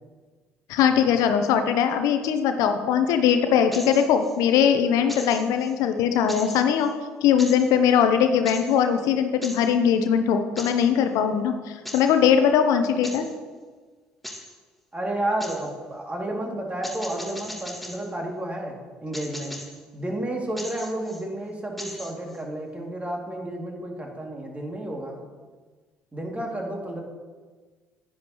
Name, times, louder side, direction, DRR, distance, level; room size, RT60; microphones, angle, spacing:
voice 1, 0.7-6.9 7.2-13.3, left 8 dB, 70° left, 7 dB, 0.7 m, -21 dB
sound 1, 3.7-4.4 5.1-5.7 6.3-6.9 7.4-7.7 8.5-8.8 9.4-9.7 10.6-10.9 11.9-12.2 13.0-13.4 14.2-14.6 15.4-15.7 16.8-18.1 19.1-19.8 20.6-21.2 21.8-22.4, left 1 dB, ahead, 1.5 m, -39 dB
voice 2, 14.9-18.8 19.0-19.6 19.9-25.2 26.1-27.0, right 1 dB, 20° right, 0 dB, 2.5 m, -31 dB
10.0 x 10.0 x 3.0 m, 1.4 s
hypercardioid pair, 55°, 6 cm